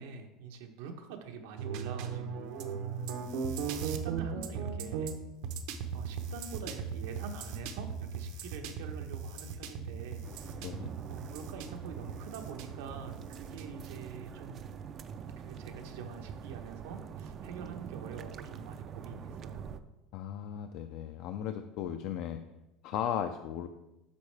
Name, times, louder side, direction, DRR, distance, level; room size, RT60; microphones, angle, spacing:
voice 1, 0.0-3.2 3.6-5.1 5.9-10.7 11.1-14.7 15.4-19.7, right 6 dB, 85° right, 4 dB, 1.0 m, -45 dB
sound 1, 1.6-14.1, right 6 dB, 65° right, 0.8 m, -38 dB
sound 2, 10.2-19.8, right 7 dB, 30° right, 0.4 m, -45 dB
voice 2, 20.1-22.4 22.8-23.7, left 10 dB, 55° left, 7 dB, 0.4 m, -36 dB
8.3 x 6.4 x 3.3 m, 0.97 s
cardioid pair, 160°, 0 cm